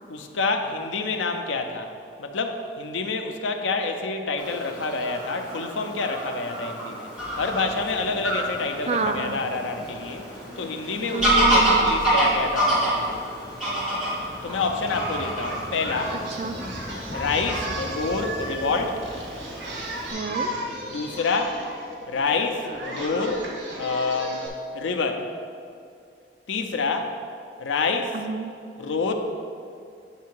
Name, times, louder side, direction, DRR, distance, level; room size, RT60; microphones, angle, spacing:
voice 1, 0.1-1.9 2.2-7.1 7.4-10.3 10.6-13.2 14.4-16.2 17.1-19.0 20.9-21.6 22.1-24.5 24.7-25.3 26.5-27.1 27.6-28.2 28.8-29.1, left 4 dB, 85° left, 5 dB, 0.6 m, -27 dB
Fowl / Bird vocalization bird call bird song, 4.4-20.1, right 1 dB, 5° right, 1.6 m, -28 dB
sound 1, 7.2-21.1, equal, 20° left, 0.7 m, -41 dB
voice 2, 8.9-9.4 11.1-12.1 16.4-16.7 20.1-20.5 28.1-28.5, right 4 dB, 35° right, 6 dB, 0.4 m, -29 dB
Singing, 14.5-24.5, right 1 dB, 85° right, 1.2 m, -35 dB
8.2 x 2.8 x 6.0 m, 2.3 s
head